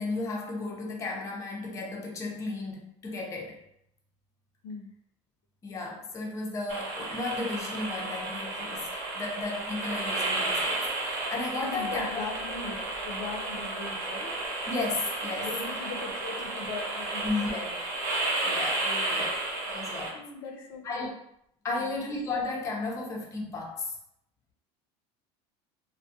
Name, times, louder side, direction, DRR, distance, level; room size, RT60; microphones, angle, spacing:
voice 1, 0.0-3.6 5.6-12.2 14.7-15.5 17.2-17.6 18.4-19.3 19.7-20.2 20.8-21.1 21.6-24.0, left 3 dB, 20° left, -2 dB, 0.5 m, -34 dB
sound 1, 6.7-20.1, right 2 dB, 80° right, 0.8 m, -32 dB
voice 2, 11.6-14.4 15.4-17.7 18.8-19.3 20.1-21.1 21.7-22.0, left 4 dB, 80° left, 3 dB, 0.5 m, -40 dB
2.3 x 2.1 x 2.6 m, 0.74 s
cardioid pair, 135°, 14 cm